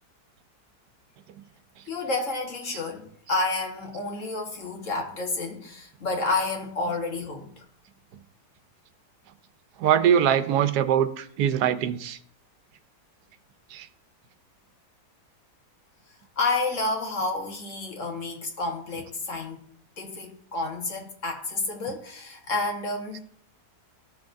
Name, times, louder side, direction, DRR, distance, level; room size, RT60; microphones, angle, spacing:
voice 1, 1.9-7.6 16.4-23.2, left 3 dB, 55° left, 1.6 m, -30 dB
voice 2, 9.8-12.2 13.7-13.9, right 9 dB, 85° right, 1.2 m, -22 dB
13.5 x 5.9 x 2.6 m
omnidirectional pair, 1.7 m